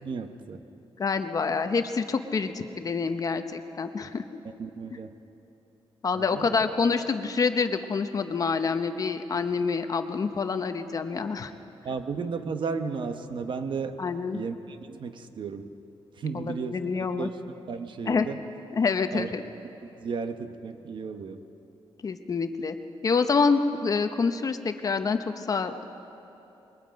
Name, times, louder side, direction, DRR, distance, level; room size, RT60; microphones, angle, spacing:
voice 1, 0.0-0.6 4.6-5.1 6.1-6.6 11.8-14.0 14.3-15.7 16.2-16.8 17.2-17.4 17.7-18.4 19.1-19.3 20.0-21.4, right 5 dB, 50° right, 8 dB, 1.0 m, -34 dB
voice 2, 1.0-4.2 6.0-11.5 14.0-14.4 16.3-17.3 18.1-18.3 18.7-19.4 22.0-22.8 23.0-25.8, left 4 dB, 35° left, 8 dB, 0.8 m, -27 dB
27.0 x 22.0 x 5.2 m, 2.9 s
wide cardioid pair, 160°, 10 cm